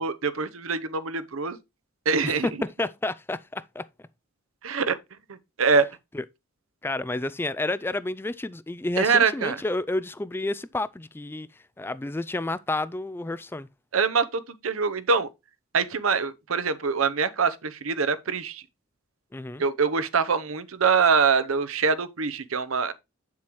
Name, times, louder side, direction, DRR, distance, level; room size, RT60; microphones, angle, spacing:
voice 1, 0.0-1.6 2.1-2.6 4.6-5.0 5.3-5.9 9.0-9.6 13.9-15.3 15.7-18.6 19.6-22.9, right 5 dB, 80° right, 0.8 m, -24 dB
voice 2, 2.2-3.9 6.1-6.2 6.8-11.5 11.8-13.7 19.3-19.6, left 2 dB, 10° left, 0.3 m, -30 dB
7.8 x 7.2 x 3.0 m
head